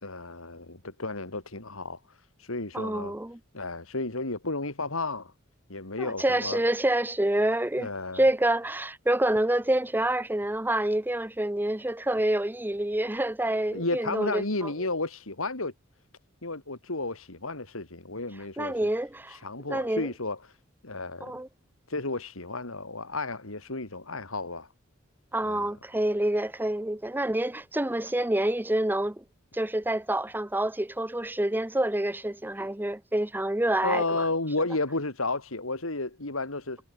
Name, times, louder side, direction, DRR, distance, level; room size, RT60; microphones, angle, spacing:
voice 1, 0.0-3.1 3.5-5.3 5.7-6.6 7.8-8.2 13.7-15.7 16.4-18.8 19.3-20.6 20.8-21.3 21.9-24.7 25.4-25.7 33.8-36.8, left 2 dB, 90° left, 3.7 m, -32 dB
voice 2, 2.7-3.4 6.0-7.9 8.1-14.7 18.6-19.4 19.7-20.1 21.2-21.5 25.3-29.2 29.5-34.2, right 1 dB, 10° right, 1.0 m, -27 dB
head